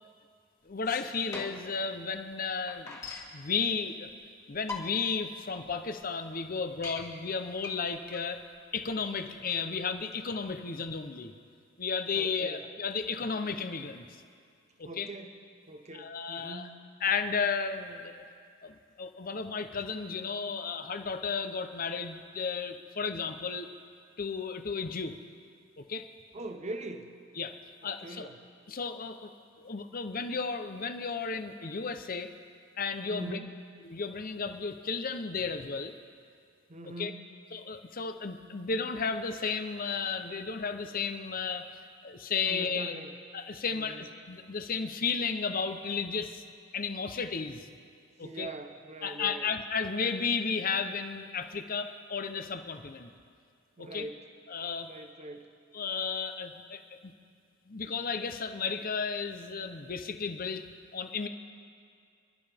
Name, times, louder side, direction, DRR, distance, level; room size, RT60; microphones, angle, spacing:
voice 1, 0.6-3.0 3.3-4.1 4.5-8.4 8.7-11.3 11.8-14.1 14.8-15.1 15.9-16.7 17.0-18.2 18.6-23.7 24.2-25.2 25.8-26.1 27.4-27.5 27.8-28.3 28.7-29.3 29.6-32.3 32.8-33.4 33.9-35.9 37.0-37.1 37.5-43.0 43.3-46.4 46.7-47.7 48.2-48.5 49.0-53.1 53.8-54.1 54.5-54.9 55.7-57.1 57.7-60.7 60.9-61.3, left 5 dB, 45° left, 8 dB, 0.7 m, -33 dB
sound 1, 0.7-1.8 2.2-2.3 2.4-3.3 4.1-4.2 4.5-5.2 5.7-5.8 6.0-6.1 6.5-7.0 7.6-10.5, left 3 dB, 15° left, 1.7 m, -42 dB
voice 2, 12.1-12.7 14.8-15.4 15.7-16.8 26.3-27.2 27.8-28.4 33.1-33.6 36.7-37.2 42.4-43.2 43.7-44.1 48.2-49.5 53.8-54.3 54.8-55.6, right 2 dB, 35° right, 7 dB, 0.8 m, -42 dB
29.5 x 12.0 x 3.5 m, 2.3 s
head